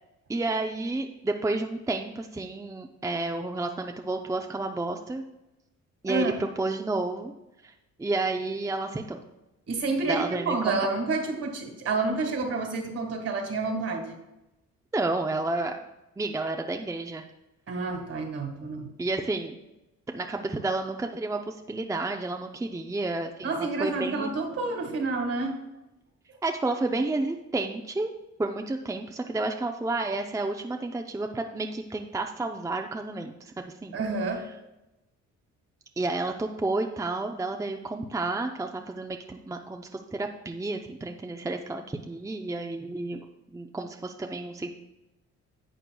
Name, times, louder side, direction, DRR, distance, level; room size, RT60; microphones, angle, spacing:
voice 1, 0.3-5.2 6.0-7.3 7.6-7.7 8.0-9.2 10.0-10.8 14.9-15.8 16.2-17.2 19.0-19.6 20.1-24.3 26.4-28.1 28.4-34.0 36.0-43.3 43.5-44.7, right 2 dB, 10° right, 4 dB, 0.5 m, -31 dB
voice 2, 9.7-14.2 17.7-18.9 23.4-25.6 33.9-34.4, right 3 dB, 55° right, 4 dB, 1.8 m, -29 dB
11.0 x 7.7 x 2.3 m, 0.95 s
cardioid pair, 90°, 30 cm